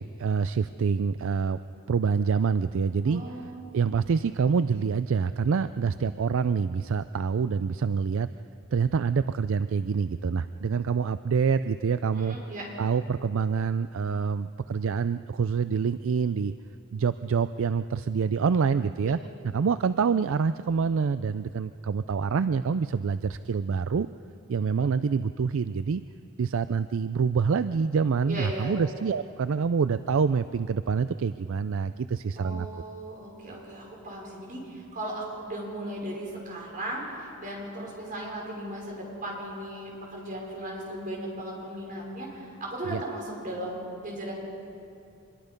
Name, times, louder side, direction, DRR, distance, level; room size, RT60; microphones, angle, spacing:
voice 1, 0.0-1.6 1.9-3.2 3.7-8.3 8.7-12.4 12.8-16.5 16.9-19.2 19.5-24.1 24.5-26.0 26.4-32.7 42.9-43.0, right 5 dB, 65° right, 13 dB, 0.4 m, -26 dB
voice 2, 3.0-3.6 12.1-12.7 19.0-19.1 28.3-28.7 32.4-44.3, right 1 dB, 40° right, -2 dB, 5.5 m, -37 dB
25.5 x 22.0 x 5.2 m, 2.6 s
head